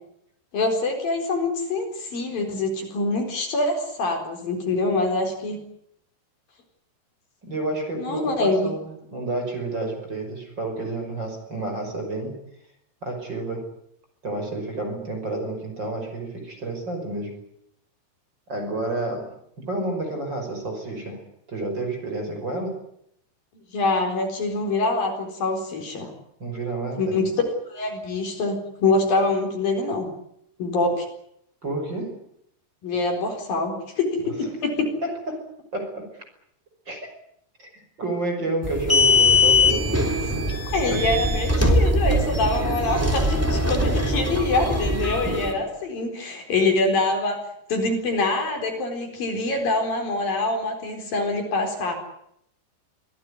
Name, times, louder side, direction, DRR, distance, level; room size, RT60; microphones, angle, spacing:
voice 1, 0.5-5.6 8.0-8.7 23.7-26.1 27.0-27.3 27.7-30.1 30.6-31.1 32.8-34.9 40.7-47.4 47.7-52.0, left 2 dB, 60° left, 4 dB, 5.9 m, -25 dB
voice 2, 7.4-8.8 9.1-12.4 13.0-13.7 14.2-17.3 18.5-21.2 21.5-22.8 26.4-27.2 31.6-32.2 34.2-34.3 35.0-35.4 35.7-36.1 36.9-37.1 37.6-40.5, right 2 dB, 25° right, 4 dB, 6.0 m, -30 dB
sound 1, 38.6-45.5, left 2 dB, 5° right, 2.8 m, -21 dB
24.5 x 17.0 x 9.8 m, 0.75 s
omnidirectional pair, 4.8 m